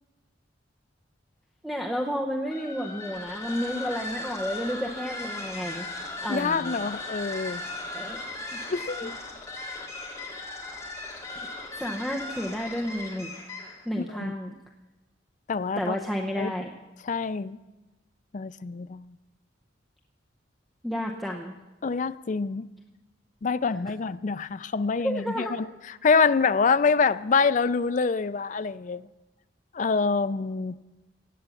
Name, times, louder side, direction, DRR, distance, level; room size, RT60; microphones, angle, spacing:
voice 1, 1.6-5.9 6.2-6.7 7.9-8.2 8.5-8.6 9.0-9.1 11.8-13.3 13.9-14.5 15.8-16.7 20.8-21.6 25.0-25.6, equal, ahead, 0.7 m, -31 dB
sound 1, 2.5-13.9, left 2 dB, 15° left, 2.3 m, -37 dB
voice 2, 6.3-7.6 8.7-9.1 14.1-14.3 15.5-16.0 16.4-16.5 17.1-17.6 18.3-19.0 21.8-22.7 23.4-25.5 26.0-29.0 29.7-30.8, left 5 dB, 40° left, 0.4 m, -25 dB
17.0 x 8.6 x 7.0 m
head